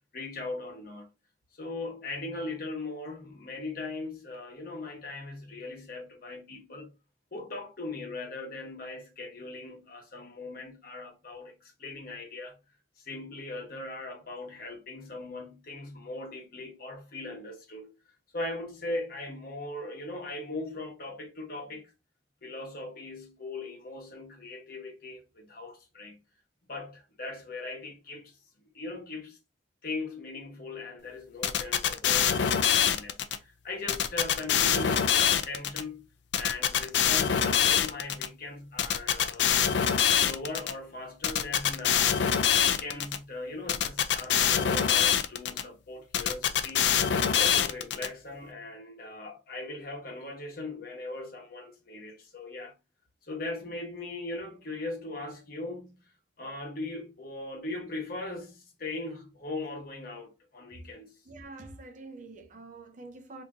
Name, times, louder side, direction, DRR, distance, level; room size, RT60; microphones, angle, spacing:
voice 1, 0.1-1.1 1.6-6.9 7.3-12.6 13.0-17.9 18.3-21.9 22.4-26.2 26.7-28.4 28.7-29.4 29.8-36.1 36.3-39.5 40.1-47.0 47.3-52.7 53.2-61.1, left 2 dB, 55° left, 1.1 m, -39 dB
sound 1, 31.4-33.4 33.9-35.8 36.3-38.3 38.8-40.7 41.2-43.2 43.7-45.6 46.1-48.1, left 8 dB, 75° left, 0.4 m, -24 dB
voice 2, 61.3-63.4, right 3 dB, 45° right, 0.6 m, -46 dB
2.8 x 2.6 x 3.5 m
head